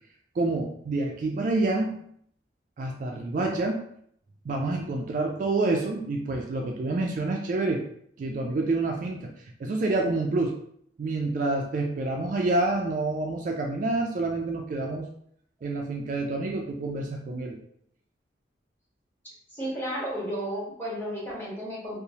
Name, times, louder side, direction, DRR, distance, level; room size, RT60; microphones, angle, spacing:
voice 1, 0.4-1.9 2.8-3.8 4.5-7.8 8.2-9.3 9.6-10.6 11.0-15.1 15.6-17.6, right 2 dB, 45° right, 1 dB, 0.3 m, -28 dB
voice 2, 19.5-22.0, equal, 10° left, -8 dB, 1.1 m, -33 dB
2.9 x 2.0 x 2.7 m, 0.66 s
head